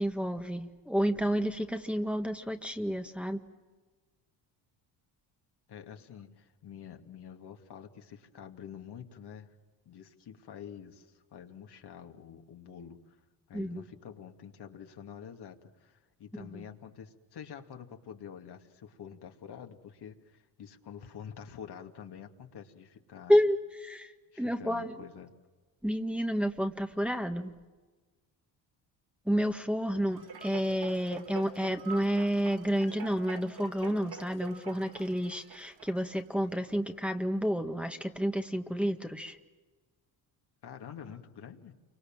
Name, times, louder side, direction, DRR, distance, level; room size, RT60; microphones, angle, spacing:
voice 1, 0.0-3.4 13.5-13.8 16.5-16.6 23.3-25.0 25.8-27.5 29.2-39.4, equal, 5° right, 5 dB, 1.7 m, -30 dB
voice 2, 5.7-9.5 9.9-13.2 13.5-23.4 24.3-25.3 40.6-41.7, left 8 dB, 60° left, 4 dB, 2.6 m, -47 dB
sound 1, 30.1-36.7 37.2-37.3, right 5 dB, 60° right, 4.7 m, -46 dB
29.0 x 25.0 x 7.5 m, 1.3 s
cardioid pair, 85°, 45 cm